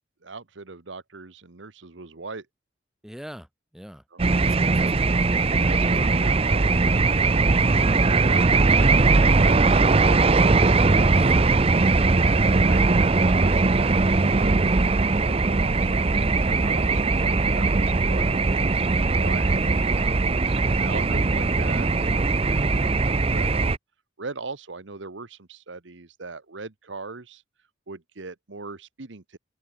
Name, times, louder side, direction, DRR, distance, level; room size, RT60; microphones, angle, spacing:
voice 1, 0.2-2.5 4.7-4.9 5.5-7.5 8.1-11.4 12.1-18.4 19.2-22.4 23.3-23.8 24.2-27.4 27.9-29.4, right 3 dB, 70° right, 1.2 m, -40 dB
voice 2, 3.0-4.0 4.3-6.0 11.1-11.6 22.4-22.8, equal, 5° right, 3.6 m, -44 dB
sound 1, 4.2-23.8, right 3 dB, 30° right, 0.6 m, -20 dB
open air
head